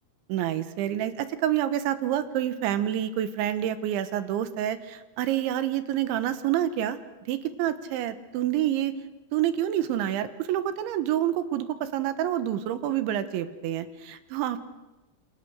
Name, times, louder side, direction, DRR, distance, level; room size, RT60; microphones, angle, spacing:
voice 1, 0.3-7.0 7.3-8.9 9.3-14.6, right 11 dB, 80° right, 12 dB, 3.6 m, -28 dB
29.0 x 27.5 x 6.4 m, 1.1 s
omnidirectional pair, 5.4 m